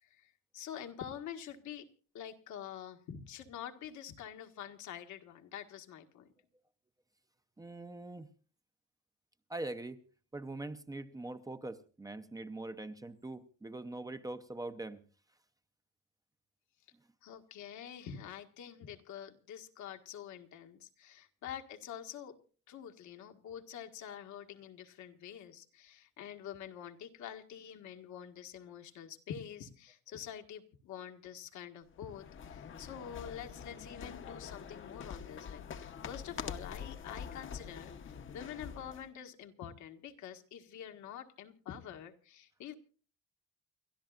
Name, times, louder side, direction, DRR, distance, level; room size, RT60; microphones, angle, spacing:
voice 1, 0.0-1.9 2.1-6.3 17.2-22.3 22.7-42.8, left 9 dB, 70° left, 1.6 m, -47 dB
voice 2, 7.6-8.3 9.5-10.0 10.3-15.0, right 2 dB, 10° right, 0.7 m, -43 dB
sound 1, 31.9-39.1, left 7 dB, 40° left, 0.9 m, -45 dB
29.5 x 13.0 x 2.5 m
cardioid pair, 160°, 30 cm